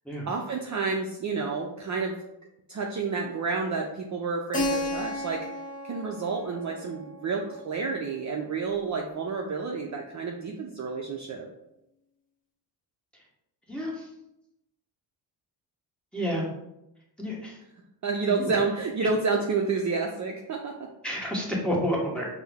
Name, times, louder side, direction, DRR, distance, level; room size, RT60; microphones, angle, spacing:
voice 1, 0.3-2.2 2.7-5.4 5.8-11.5 18.0-20.9, right 4 dB, 40° right, 1 dB, 0.5 m, -29 dB
Keyboard (musical), 4.5-9.1, left 1 dB, 15° left, 0.8 m, -35 dB
voice 2, 13.7-14.1 16.1-16.4 17.2-17.6 18.3-18.6 21.0-22.3, equal, ahead, -3 dB, 1.1 m, -30 dB
4.3 x 2.0 x 3.4 m, 0.87 s
cardioid pair, 75°, 46 cm